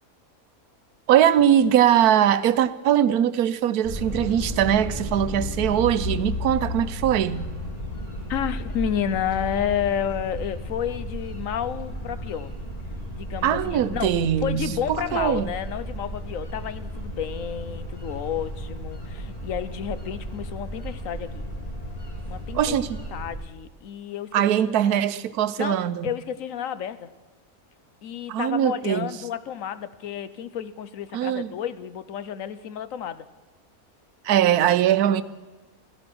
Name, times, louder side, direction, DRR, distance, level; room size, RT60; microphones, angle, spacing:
voice 1, 1.1-7.5 13.4-15.5 22.5-23.0 24.3-26.1 28.3-29.1 31.1-31.5 34.2-35.2, right 10 dB, 90° right, 14 dB, 1.2 m, -21 dB
sound 1, 3.8-23.3, equal, 25° left, 3.2 m, -34 dB
voice 2, 8.3-12.5 13.1-14.2 14.4-21.5 22.3-22.8 23.1-24.6 24.8-25.0 25.6-27.1 28.0-33.2, left 9 dB, 65° left, 14 dB, 1.1 m, -31 dB
16.0 x 14.0 x 6.1 m, 1.2 s
omnidirectional pair, 1.6 m